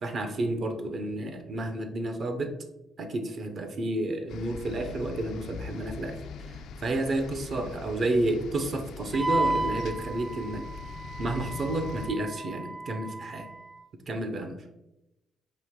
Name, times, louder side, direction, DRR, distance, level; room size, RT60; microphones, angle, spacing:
voice 1, 0.0-2.5 3.0-6.2 6.5-10.7 11.2-13.5 14.1-14.6, right 2 dB, 50° right, 6 dB, 0.7 m, -31 dB
sound 1, 4.3-12.1, left 4 dB, 80° left, 0.4 m, -41 dB
Wind instrument woodwind instrument, 9.1-13.8, right 2 dB, 15° right, 0.3 m, -33 dB
4.8 x 2.8 x 3.7 m, 0.92 s
cardioid pair, 90°, 0 cm